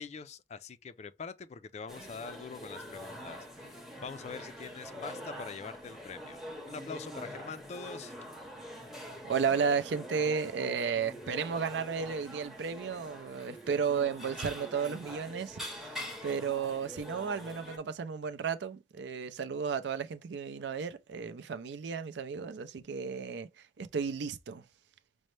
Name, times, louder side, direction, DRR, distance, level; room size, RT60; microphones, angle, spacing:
voice 1, 0.0-8.2, left 5 dB, 40° left, 0.3 m, -44 dB
sound 1, 1.9-17.8, equal, ahead, 0.7 m, -45 dB
voice 2, 9.3-23.5 23.8-24.6, right 6 dB, 80° right, 0.4 m, -33 dB
5.3 x 2.1 x 3.1 m
head